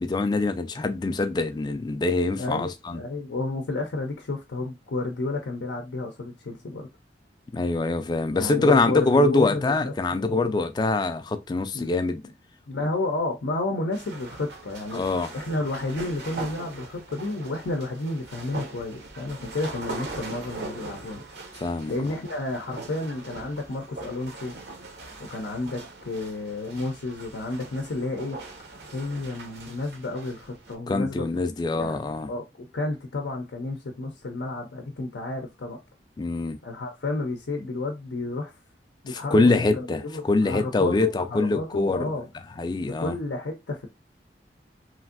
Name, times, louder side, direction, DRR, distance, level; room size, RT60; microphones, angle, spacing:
voice 1, 0.0-3.0 7.5-12.2 14.9-15.3 21.6-21.9 30.9-32.3 36.2-36.6 39.1-42.1 42.6-43.2, left 2 dB, 25° left, 0.3 m, -24 dB
voice 2, 2.4-6.9 8.3-10.5 11.7-11.9 12.7-15.0 15.3-21.2 21.9-24.5 25.2-28.4 28.9-31.3 31.7-32.0 32.3-35.8 36.6-38.5 39.0-42.3 43.0-43.9, left 2 dB, 85° left, 0.6 m, -31 dB
sound 1, 13.9-30.7, right 3 dB, 70° right, 0.8 m, -41 dB
3.1 x 2.5 x 2.4 m
head